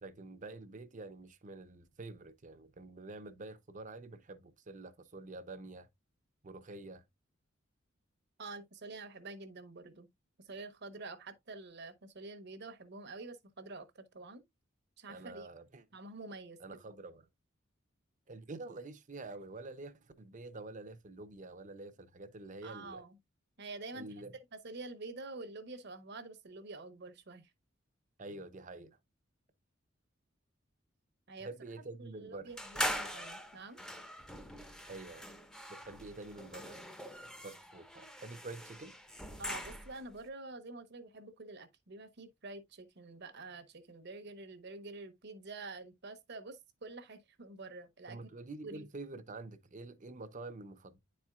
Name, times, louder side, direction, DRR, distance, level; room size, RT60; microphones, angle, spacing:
voice 1, 0.0-5.9 6.4-7.0 15.1-15.8 16.6-17.3 18.3-23.0 23.9-24.3 28.2-29.0 31.4-32.5 34.8-35.3 35.7-36.8 37.4-38.9 48.1-51.0, right 2 dB, 40° right, 0.7 m, -47 dB
voice 2, 8.4-10.1 10.4-14.4 15.0-15.5 15.9-16.8 22.6-23.2 23.6-24.1 24.6-27.5 31.3-31.5 32.0-33.8 39.4-48.2 48.6-48.9, right 3 dB, 60° right, 1.0 m, -47 dB
sound 1, 32.6-40.1, equal, 5° left, 0.7 m, -42 dB
10.0 x 4.3 x 2.3 m
head